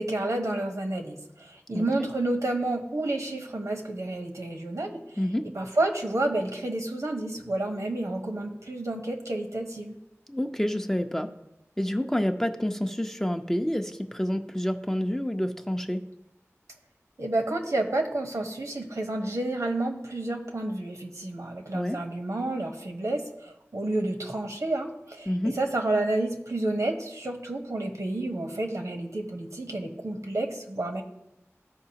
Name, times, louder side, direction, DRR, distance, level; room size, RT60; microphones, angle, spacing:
voice 1, 0.0-5.0 5.5-10.0 17.2-31.0, right 2 dB, 80° right, 2 dB, 1.1 m, -30 dB
voice 2, 5.2-5.6 10.3-11.3 11.8-16.1 21.7-22.0 25.3-25.6, equal, 10° left, 5 dB, 0.6 m, -28 dB
14.5 x 4.8 x 2.9 m, 0.87 s
wide cardioid pair, 45°, 5 cm